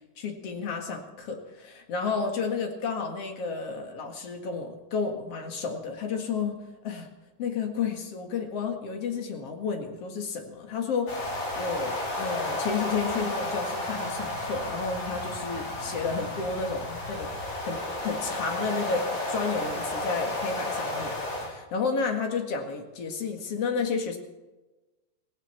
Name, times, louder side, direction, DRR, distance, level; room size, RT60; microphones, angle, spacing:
voice 1, 0.2-6.6 6.8-7.1 7.4-17.3 17.6-21.1 21.4-24.2, left 5 dB, 50° left, 4 dB, 2.6 m, -31 dB
sound 1, 11.1-21.5, left 1 dB, 75° left, 6.1 m, -32 dB
18.0 x 17.0 x 4.4 m, 1.1 s
omnidirectional pair, 3.8 m